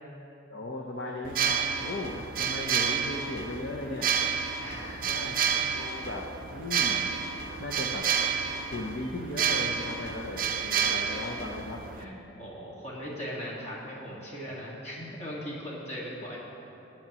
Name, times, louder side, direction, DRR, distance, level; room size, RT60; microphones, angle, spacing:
voice 1, 0.5-4.1 4.9-5.4 5.7-7.1 7.6-8.1 8.7-11.8, left 2 dB, 60° left, 0 dB, 0.7 m, -37 dB
sound 1, 1.2-12.0, right 7 dB, 45° right, 0.5 m, -30 dB
voice 2, 4.6-5.2 12.0-16.4, equal, 35° left, -4 dB, 1.7 m, -39 dB
17.5 x 7.3 x 2.9 m, 3.0 s
head